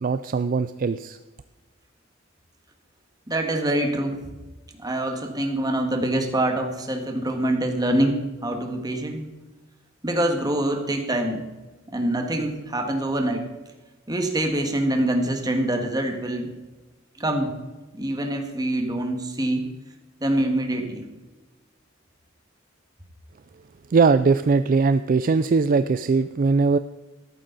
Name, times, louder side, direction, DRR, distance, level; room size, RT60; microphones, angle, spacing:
voice 1, 0.0-1.2 23.9-26.8, right 4 dB, 45° right, 12 dB, 0.4 m, -20 dB
voice 2, 3.3-4.2 4.8-9.2 10.0-11.4 11.9-13.4 14.1-16.5 17.2-17.5 17.9-19.7 20.2-21.1, right 1 dB, 20° right, 4 dB, 1.7 m, -25 dB
13.5 x 11.5 x 4.0 m, 1.2 s
head